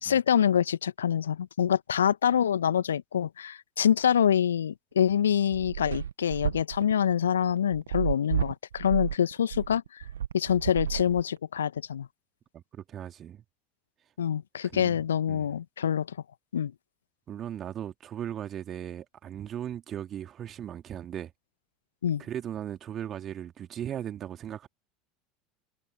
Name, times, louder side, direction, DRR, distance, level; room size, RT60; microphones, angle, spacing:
voice 1, 0.0-10.0 10.3-12.1 14.2-16.2 16.5-16.7 22.0-22.2, left 9 dB, 75° left, 1.6 m, -26 dB
sound 1, 5.1-11.6, right 9 dB, 75° right, 1.7 m, -32 dB
voice 2, 12.5-13.4 14.6-15.0 15.3-15.5 17.3-21.3 22.2-24.7, right 10 dB, 35° right, 2.8 m, -37 dB
figure-of-eight pair, 75°, 0 cm